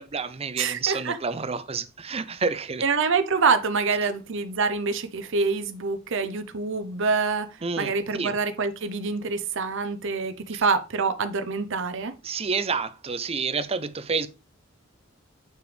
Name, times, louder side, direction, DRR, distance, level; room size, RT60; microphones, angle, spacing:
voice 1, 0.0-2.8 7.6-8.4 10.5-10.6 12.2-14.3, right 4 dB, 30° right, 0.6 m, -29 dB
voice 2, 0.6-1.2 2.8-7.5 7.8-12.1, right 4 dB, 65° right, 0.8 m, -26 dB
7.9 x 4.9 x 3.3 m
head